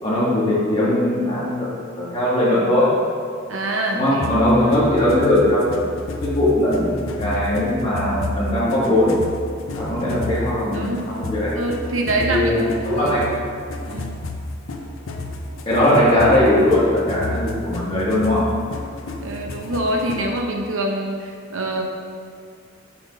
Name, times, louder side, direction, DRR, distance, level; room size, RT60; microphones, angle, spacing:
voice 1, 0.0-2.9 3.9-5.8 6.2-9.1 9.7-11.5 12.2-13.4 13.8-13.9 15.6-18.4, left 1 dB, 30° left, -8 dB, 1.6 m, -19 dB
voice 2, 3.5-4.4 10.7-11.0 11.6-13.3 13.8-14.2 19.2-21.8, right 1 dB, 90° right, 1 dB, 0.8 m, -25 dB
sound 1, 4.2-20.4, left 2 dB, 85° left, 0.6 m, -31 dB
5.9 x 3.8 x 5.1 m, 2.2 s
head